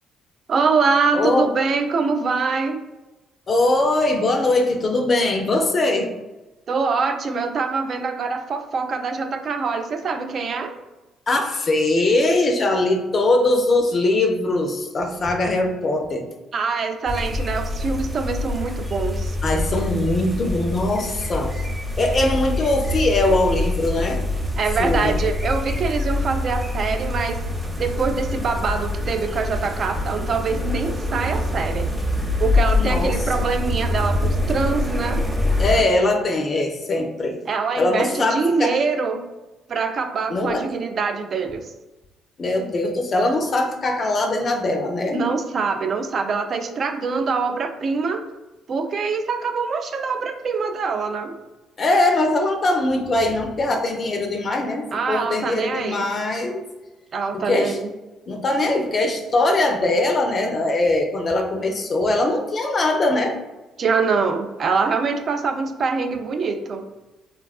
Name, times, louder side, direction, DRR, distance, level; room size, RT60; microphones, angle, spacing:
voice 1, 0.5-2.8 6.7-10.7 16.5-19.4 24.6-27.4 27.8-31.9 32.4-35.2 37.5-39.2 39.7-41.7 45.1-48.2 48.7-51.4 54.9-56.1 57.1-57.9 63.8-66.8, right 4 dB, 50° right, 7 dB, 0.3 m, -24 dB
voice 2, 1.1-1.5 3.5-6.1 11.3-16.3 19.4-21.5 22.0-24.2 24.8-25.1 32.8-33.5 35.6-37.4 37.8-38.7 40.3-40.6 42.4-45.2 51.8-56.6 57.3-57.8 58.3-63.4, left 2 dB, 45° left, 4 dB, 0.4 m, -21 dB
sound 1, 17.1-35.8, left 2 dB, 15° right, 0.7 m, -25 dB
3.3 x 2.3 x 2.3 m, 1.1 s
supercardioid pair, 75°, 0 cm